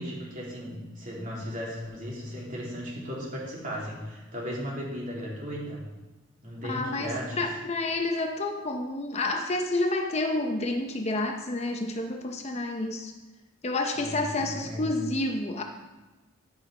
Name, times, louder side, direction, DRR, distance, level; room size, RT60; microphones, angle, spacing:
voice 1, 0.0-5.9 6.4-7.4 14.0-14.9, equal, 40° right, -4 dB, 2.9 m, -36 dB
voice 2, 6.7-13.1 13.6-15.6, left 2 dB, 35° left, 4 dB, 0.7 m, -29 dB
11.5 x 5.4 x 4.9 m, 1.2 s
head